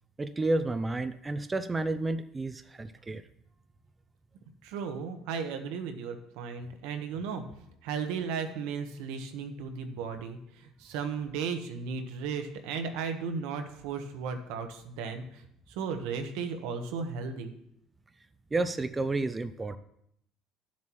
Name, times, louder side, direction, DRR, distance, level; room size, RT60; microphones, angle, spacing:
voice 1, 0.2-3.2 18.5-19.8, right 2 dB, 20° right, 11 dB, 0.5 m, -31 dB
voice 2, 4.6-7.4 7.8-17.5, right 6 dB, 80° right, 6 dB, 1.1 m, -35 dB
12.0 x 7.3 x 3.1 m, 0.75 s
supercardioid pair, 95°, 0 cm